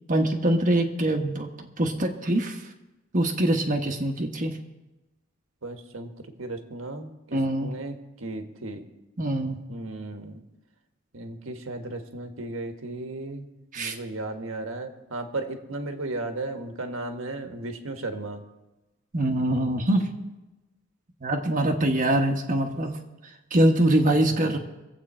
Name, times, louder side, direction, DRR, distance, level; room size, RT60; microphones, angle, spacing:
voice 1, 0.1-2.6 3.1-4.6 7.3-7.7 9.2-9.6 13.7-13.9 19.1-20.1 21.2-22.9 23.5-24.6, right 1 dB, 40° right, 2 dB, 1.1 m, -23 dB
voice 2, 5.6-8.8 9.7-10.4 11.1-13.5 13.7-18.4 24.2-24.6, right 2 dB, 70° right, 5 dB, 1.5 m, -35 dB
23.5 x 8.1 x 4.3 m, 1.0 s
head